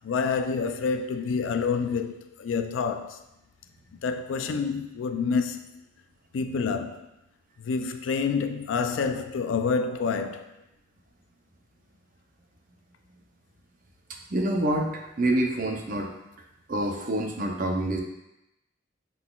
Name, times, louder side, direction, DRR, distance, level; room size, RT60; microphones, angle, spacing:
voice 1, 0.0-3.2 3.9-5.8 6.3-7.1 7.6-10.5, left 5 dB, 80° left, 0.4 m, -28 dB
voice 2, 14.3-16.1 16.7-18.0, right 1 dB, 45° right, 0.6 m, -27 dB
5.5 x 3.9 x 2.3 m
head